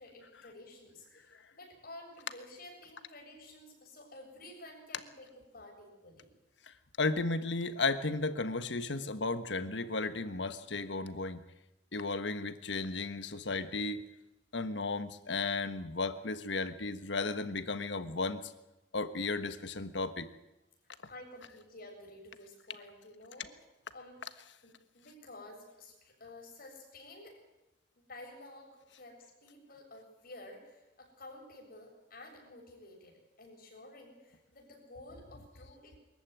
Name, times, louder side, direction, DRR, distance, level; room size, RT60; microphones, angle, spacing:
voice 1, 0.0-5.3 5.5-6.3 21.1-23.5 23.9-24.3 24.6-27.3 28.0-29.2 29.4-36.0, left 1 dB, 55° left, 1 dB, 7.4 m, -52 dB
voice 2, 6.7-11.4 11.9-14.0 14.5-18.5 18.9-20.3, left 3 dB, 75° left, 11 dB, 1.4 m, -34 dB
23.0 x 14.0 x 9.5 m, 1.0 s
head